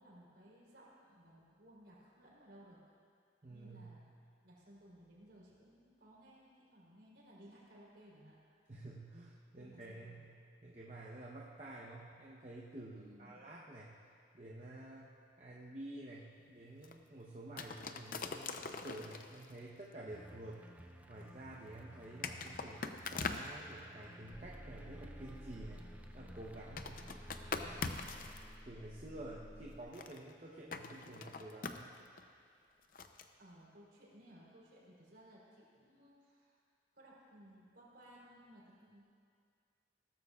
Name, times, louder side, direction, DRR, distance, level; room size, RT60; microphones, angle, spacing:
voice 1, 0.0-2.8 3.5-4.0 4.4-8.4 9.6-10.2 13.0-13.4 33.4-36.6 36.9-39.0, equal, 70° right, -6 dB, 3.5 m, -60 dB
voice 2, 3.4-3.9 8.7-10.3 10.6-14.0 14.3-20.7 21.1-25.8 26.1-27.1 27.7-27.9 28.6-32.0, right 1 dB, 35° right, -5 dB, 0.9 m, -50 dB
sound 1, 16.8-17.0 17.6-19.6 21.2-21.3 22.2-23.5 26.8-28.4 29.9-30.3 30.7-32.2 32.9-33.2, left 4 dB, 50° left, 0.6 m, -42 dB
sound 2, 20.1-28.2, equal, 10° right, 0.4 m, -56 dB
sound 3, 24.3-29.8, equal, 15° left, 1.1 m, -52 dB
17.5 x 13.5 x 2.4 m, 2.3 s
head